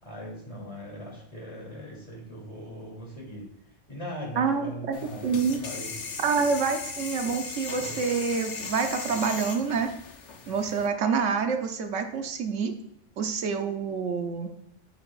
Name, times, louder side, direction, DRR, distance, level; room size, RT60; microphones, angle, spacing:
voice 1, 0.0-3.4 3.9-6.1 7.7-8.0, equal, 25° left, -4 dB, 2.8 m, -40 dB
voice 2, 4.4-5.0 5.2-5.6 6.2-9.9 10.5-12.7 13.2-14.5, right 5 dB, 80° right, 6 dB, 1.1 m, -27 dB
sound 1, 4.9-10.9, left 5 dB, 70° left, 1.2 m, -38 dB
8.6 x 6.6 x 2.4 m, 0.77 s
omnidirectional pair, 1.2 m